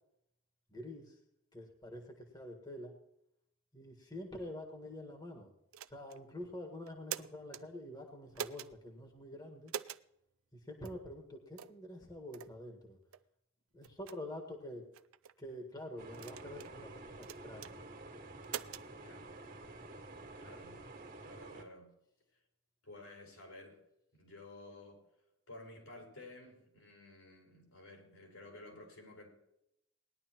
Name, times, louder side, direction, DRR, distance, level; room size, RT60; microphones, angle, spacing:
voice 1, 0.7-1.2 1.5-2.9 3.7-5.5 5.9-9.7 10.7-13.0 13.7-14.9 15.4-17.8, left 1 dB, 20° left, 3 dB, 1.6 m, -47 dB
sound 1, 5.7-6.2 6.9-7.6 8.3-8.7 9.7-10.0 10.8-11.0 11.6-11.8 12.3-12.5 13.1-13.2 13.8-14.2 14.9-15.3 16.1-16.7 17.2-17.7 18.4-18.9, right 9 dB, 75° right, 0.5 m, -44 dB
sound 2, 16.0-21.6, right 2 dB, 40° right, 1.9 m, -50 dB
voice 2, 19.0-19.3 20.3-20.8 21.2-21.9 22.8-23.8 24.2-25.0 25.5-29.3, left 2 dB, 80° left, 0 dB, 5.5 m, -53 dB
19.5 x 11.5 x 3.0 m, 0.80 s
head